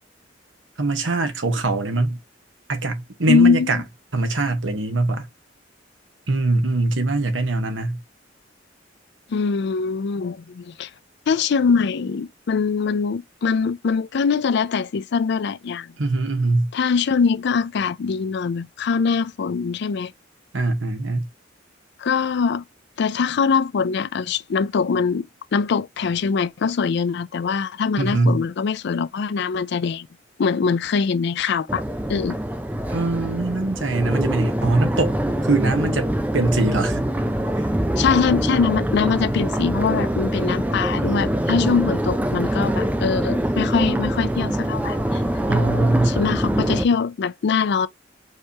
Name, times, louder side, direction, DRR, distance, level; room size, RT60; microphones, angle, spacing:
voice 1, 0.8-2.2 2.7-3.8 4.1-5.3 6.3-8.0 16.0-16.7 20.5-21.3 28.0-28.4 32.9-37.0 37.5-37.7 45.5-46.2, right 2 dB, 80° right, 1.2 m, -22 dB
voice 2, 3.3-3.8 9.3-10.9 11.3-15.9 16.7-20.1 22.0-22.6 23.0-25.3 25.5-30.1 30.4-31.8 32.1-32.4 38.0-45.2 46.0-47.9, left 5 dB, 65° left, 0.4 m, -22 dB
Crowd, 31.7-46.8, right 1 dB, 10° right, 0.5 m, -24 dB
4.7 x 3.3 x 2.8 m
head